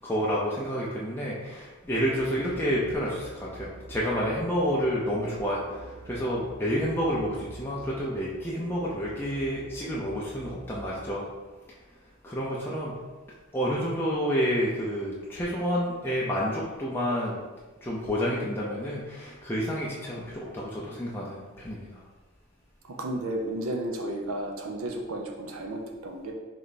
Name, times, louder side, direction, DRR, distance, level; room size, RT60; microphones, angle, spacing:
voice 1, 0.0-11.3 12.2-13.0 13.5-17.4 17.8-22.0, equal, 10° left, -6 dB, 0.5 m, -29 dB
sound 1, 1.8-11.1, right 2 dB, 25° right, 1.2 m, -47 dB
voice 2, 22.9-26.3, right 1 dB, 80° right, 2 dB, 0.6 m, -33 dB
3.3 x 3.1 x 4.1 m, 1.3 s
head